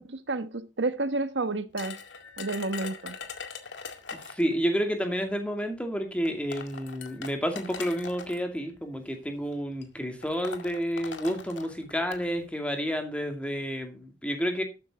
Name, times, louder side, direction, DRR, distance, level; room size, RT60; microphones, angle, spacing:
voice 1, 0.0-2.0 2.4-3.2, right 3 dB, 75° right, 1.2 m, -30 dB
sound 1, 1.8-4.5 5.6-5.7 6.3-8.4 9.3-9.5 9.8-9.9 10.2-12.2, left 5 dB, 80° left, 2.1 m, -41 dB
voice 2, 4.2-14.6, equal, 5° left, 2.4 m, -30 dB
12.5 x 9.3 x 3.7 m
head